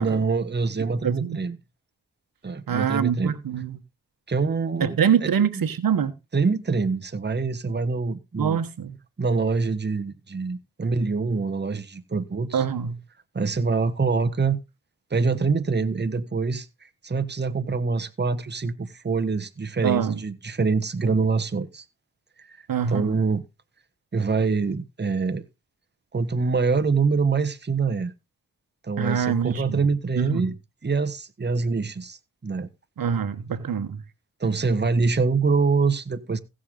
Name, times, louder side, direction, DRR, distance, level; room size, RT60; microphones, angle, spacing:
voice 1, 0.0-1.6 2.4-3.3 4.3-5.0 5.2-5.3 5.5-5.6 6.3-8.6 9.2-12.6 13.3-14.6 15.1-16.7 17.0-21.8 22.4-23.4 24.1-25.4 26.1-28.1 28.8-30.5 30.8-32.7 34.4-36.4, right 4 dB, 30° right, 1.2 m, -25 dB
voice 2, 1.0-1.4 2.7-3.8 4.8-6.1 8.4-9.0 12.5-13.0 19.8-20.2 22.7-23.2 29.0-29.8 30.2-30.5 33.0-34.0, right 7 dB, 75° right, 1.2 m, -25 dB
16.0 x 6.4 x 3.7 m
cardioid pair, 45°, 35 cm